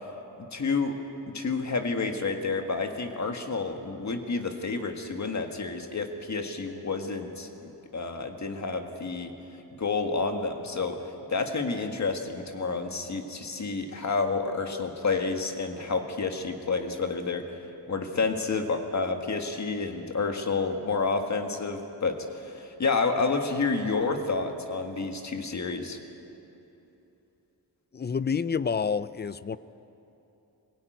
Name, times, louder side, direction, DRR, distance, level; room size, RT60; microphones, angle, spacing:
voice 1, 0.5-1.0 1.3-9.3 9.8-11.0 11.3-17.6 17.9-26.0, left 4 dB, 45° left, 5 dB, 1.8 m, -29 dB
voice 2, 27.9-29.6, left 6 dB, 25° left, 16 dB, 0.4 m, -28 dB
23.0 x 16.5 x 9.3 m, 3.0 s
wide cardioid pair, 150°, 40 cm